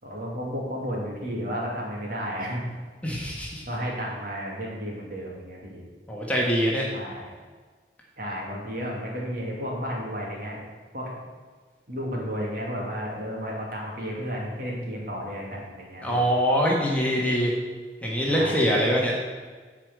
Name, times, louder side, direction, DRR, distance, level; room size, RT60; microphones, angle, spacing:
voice 1, 0.0-2.6 3.7-5.8 6.9-7.2 8.2-10.6 10.9-11.2 11.9-16.3 18.3-19.3, equal, 55° right, -3 dB, 2.5 m, -33 dB
voice 2, 3.0-3.6 6.1-6.9 16.0-17.5 18.0-19.1, equal, 10° left, -3 dB, 1.6 m, -23 dB
8.8 x 4.9 x 7.6 m, 1.5 s
head